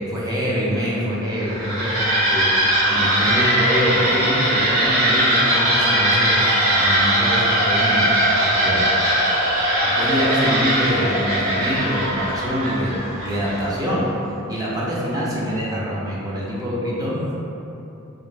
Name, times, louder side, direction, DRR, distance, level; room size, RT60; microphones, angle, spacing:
voice 1, 0.0-8.0 8.4-8.9 9.8-12.9 13.2-14.1 14.5-17.3, equal, 20° right, -7 dB, 0.5 m, -25 dB
sound 1, 1.3-13.8, right 1 dB, 75° right, 0.8 m, -20 dB
3.4 x 2.5 x 3.2 m, 2.9 s
head